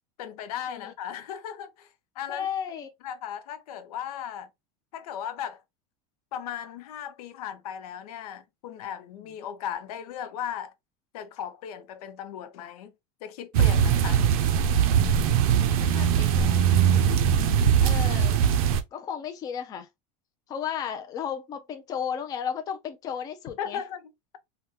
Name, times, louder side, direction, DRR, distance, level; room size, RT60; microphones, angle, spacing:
voice 1, 0.2-1.9 2.2-2.5 3.0-4.5 4.9-5.6 6.3-10.7 11.1-12.9 13.2-14.3 23.6-24.4, left 9 dB, 85° left, 0.7 m, -37 dB
voice 2, 2.3-2.9 15.8-16.6 17.8-18.3 18.9-19.9 20.5-23.8, left 8 dB, 20° left, 0.4 m, -34 dB
sound 1, 13.5-18.8, right 8 dB, 75° right, 0.6 m, -21 dB
3.4 x 2.2 x 2.8 m
supercardioid pair, 170°, 19 cm